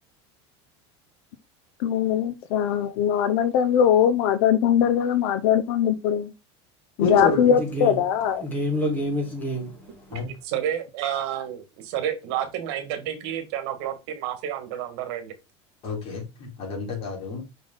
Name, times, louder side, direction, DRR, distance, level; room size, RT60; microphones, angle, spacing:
voice 1, 1.8-6.3 7.0-8.4, left 9 dB, 70° left, 0.7 m, -21 dB
voice 2, 7.0-7.5 10.1-10.3 15.8-17.5, left 2 dB, 40° left, 3.9 m, -28 dB
voice 3, 7.6-8.0 8.4-10.2, equal, 10° left, 2.7 m, -28 dB
voice 4, 10.1-15.3, right 10 dB, 65° right, 1.7 m, -30 dB
5.8 x 5.3 x 3.8 m
cardioid pair, 155°, 15 cm